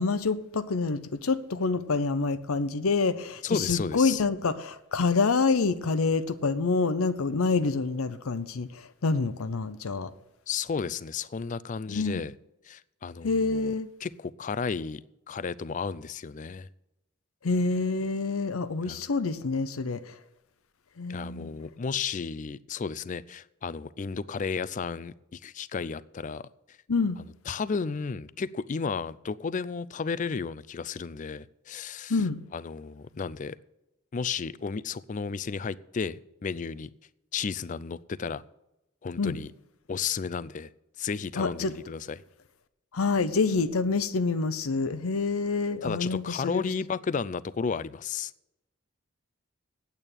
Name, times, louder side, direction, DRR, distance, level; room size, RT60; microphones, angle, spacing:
voice 1, 0.0-10.1 11.9-12.2 13.2-13.9 17.4-20.1 21.0-21.5 26.9-27.2 32.1-32.4 39.2-39.4 41.4-41.7 42.9-46.6, left 4 dB, 85° left, 0.7 m, -27 dB
voice 2, 3.4-4.2 10.5-12.3 12.6-13.7 14.0-16.7 18.8-19.0 21.1-26.5 27.5-32.2 32.5-33.6 34.1-36.9 37.3-38.4 39.0-39.5 39.9-40.7 41.0-42.2 45.8-48.3, left 5 dB, 35° left, 0.4 m, -33 dB
8.9 x 8.3 x 8.9 m
head